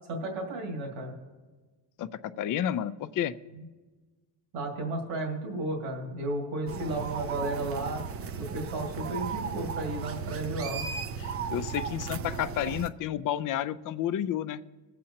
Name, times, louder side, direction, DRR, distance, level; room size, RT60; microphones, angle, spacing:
voice 1, 0.1-1.1 3.6-3.7 4.5-8.0 8.4-10.8, right 2 dB, 80° right, 0 dB, 2.3 m, -33 dB
voice 2, 2.4-3.3 11.2-14.6, left 10 dB, 45° left, 12 dB, 0.5 m, -31 dB
sound 1, 6.7-12.9, right 6 dB, 30° right, 0.4 m, -35 dB
20.0 x 7.6 x 2.9 m, 1.3 s
cardioid pair, 110°, 47 cm